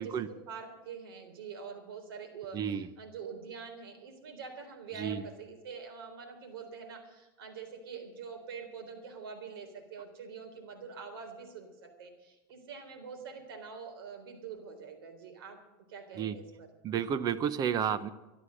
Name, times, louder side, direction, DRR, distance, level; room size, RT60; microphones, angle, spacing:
voice 1, 0.0-15.6 15.9-16.7, right 5 dB, 90° right, 5 dB, 3.8 m, -45 dB
voice 2, 2.5-2.9 4.9-5.2 16.1-16.4 16.8-18.1, right 8 dB, 35° right, 14 dB, 0.9 m, -31 dB
13.0 x 12.0 x 6.5 m, 1.1 s
supercardioid pair, 140°, 12 cm